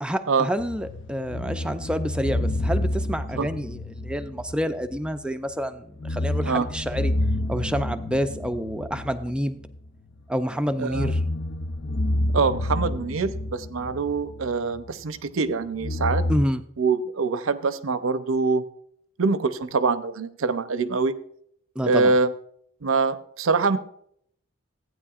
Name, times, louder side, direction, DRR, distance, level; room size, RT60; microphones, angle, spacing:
voice 1, 0.0-7.1 7.5-9.6 10.3-11.2 16.3-16.6 21.8-22.1, equal, 5° right, 9 dB, 0.4 m, -28 dB
sound 1, 0.6-5.2 5.5-5.6 6.0-10.2 10.7-15.0 15.8-16.4, left 1 dB, 60° left, 0.5 m, -29 dB
voice 2, 10.8-11.1 12.3-16.2 16.8-18.6 19.2-21.2 21.8-22.3 22.8-23.8, right 4 dB, 80° right, 12 dB, 0.6 m, -24 dB
15.0 x 9.2 x 2.4 m, 0.67 s
head